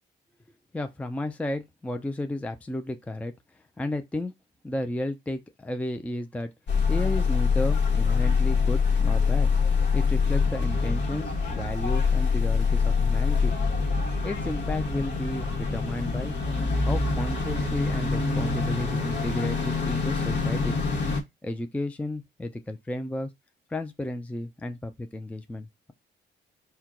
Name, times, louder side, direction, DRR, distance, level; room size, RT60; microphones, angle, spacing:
voice 1, 0.7-3.3 3.8-4.3 4.6-6.5 6.9-9.5 9.9-13.5 14.2-16.3 16.8-20.8 21.4-23.3 23.7-25.9, left 1 dB, 5° left, 0.4 m, -33 dB
sound 1, 6.7-21.2, left 4 dB, 60° left, 1.2 m, -25 dB
4.4 x 2.2 x 3.7 m
cardioid pair, 90°, 20 cm